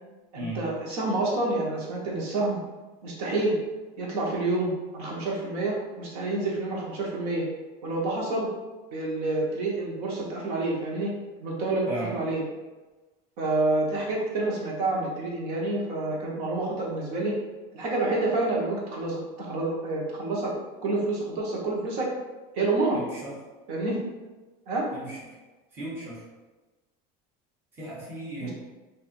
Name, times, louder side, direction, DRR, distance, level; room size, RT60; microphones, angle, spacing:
voice 1, 0.3-2.6 3.0-3.6 4.0-7.5 7.8-8.5 8.9-11.1 11.4-12.4 13.4-17.4 17.7-20.5 20.8-22.1 22.5-23.0 23.7-24.0 24.7-24.9 28.4-28.5, right 2 dB, 75° right, -3 dB, 1.0 m, -28 dB
voice 2, 11.9-12.2 22.9-23.4 24.9-25.2 25.7-26.3 27.7-28.5, right 1 dB, 10° right, -8 dB, 0.9 m, -36 dB
4.2 x 2.6 x 2.5 m, 1.2 s
cardioid pair, 170°, 20 cm